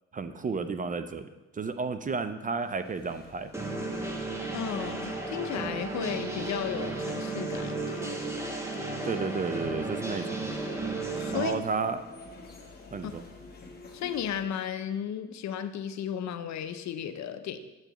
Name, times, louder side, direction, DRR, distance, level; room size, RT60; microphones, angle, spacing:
voice 1, 0.1-3.5 9.0-10.6 11.3-12.0 12.9-13.2, right 4 dB, 30° right, 10 dB, 0.4 m, -32 dB
sound 1, 2.6-14.4, left 3 dB, 30° left, 1.3 m, -50 dB
sound 2, 3.5-11.5, right 2 dB, 10° right, 1.0 m, -34 dB
voice 2, 4.5-8.1 11.2-11.6 13.0-13.1 13.9-17.6, left 9 dB, 65° left, 10 dB, 0.6 m, -34 dB
7.9 x 6.8 x 3.0 m, 1.1 s
cardioid pair, 90°, 30 cm